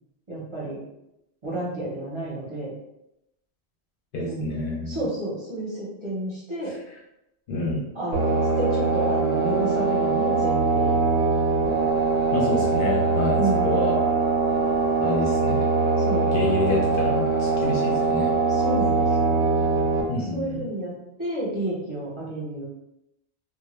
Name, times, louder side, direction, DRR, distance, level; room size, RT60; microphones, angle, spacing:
voice 1, 0.3-0.8 1.4-2.7 4.2-4.5 4.9-6.8 7.9-11.1 13.4-13.7 16.0-16.4 18.5-19.4 20.1-20.9 21.2-22.7, right 1 dB, 30° right, -8 dB, 0.6 m, -31 dB
voice 2, 4.1-5.0 7.5-7.9 12.3-14.0 15.0-15.7 16.3-18.3 20.1-20.6, left 2 dB, 60° left, -3 dB, 0.7 m, -28 dB
sound 1, 8.1-20.0, right 3 dB, 75° right, 0.9 m, -22 dB
2.1 x 2.1 x 2.9 m, 0.86 s
omnidirectional pair, 1.1 m